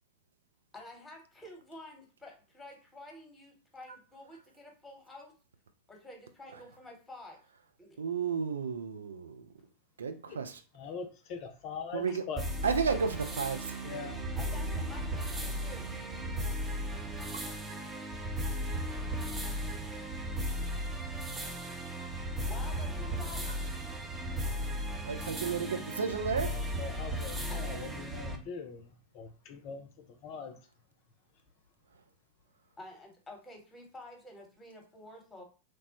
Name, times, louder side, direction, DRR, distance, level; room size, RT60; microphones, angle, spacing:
voice 1, 0.7-5.3 5.9-7.4 7.8-7.9 12.1-12.2 14.4-15.9 22.5-23.5 27.5-27.6 32.8-35.4, left 1 dB, 10° left, 1 dB, 1.0 m, -49 dB
voice 2, 8.0-9.4 10.0-10.5 11.9-12.2 12.6-13.8 25.0-26.6, right 6 dB, 70° right, 8 dB, 0.3 m, -32 dB
voice 3, 10.7-12.4 12.9-13.0 13.8-14.2 26.4-29.9 30.2-30.6, left 5 dB, 40° left, 6 dB, 0.4 m, -42 dB
sound 1, 12.4-28.4, equal, 15° right, 0.5 m, -36 dB
3.1 x 2.0 x 2.8 m, 0.35 s
figure-of-eight pair, 90°, 0 cm